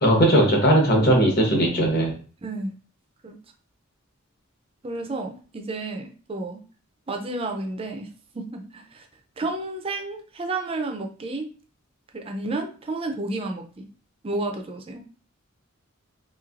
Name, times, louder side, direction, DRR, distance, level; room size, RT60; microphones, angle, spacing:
voice 1, 0.0-2.2, right 1 dB, 45° left, 0 dB, 1.0 m, -18 dB
voice 2, 2.4-2.7 3.2-3.4 4.8-6.6 7.1-8.1 8.3-9.1 9.4-11.5 12.1-13.9 14.2-15.0, right 2 dB, 25° right, 4 dB, 0.4 m, -31 dB
3.1 x 2.7 x 2.4 m, 0.39 s
head